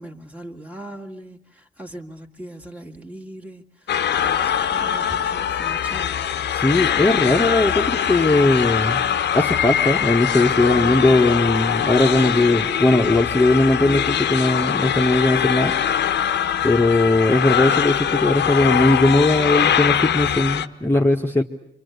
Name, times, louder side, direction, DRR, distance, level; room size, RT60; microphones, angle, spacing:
voice 1, 0.0-6.2, right 1 dB, 5° right, 2.1 m, -40 dB
sound 1, 3.9-20.7, left 9 dB, 60° left, 1.0 m, -22 dB
voice 2, 6.5-9.0 9.3-15.7 16.6-21.4, left 2 dB, 10° left, 1.4 m, -19 dB
26.5 x 25.5 x 8.2 m
cardioid pair, 90°, 20 cm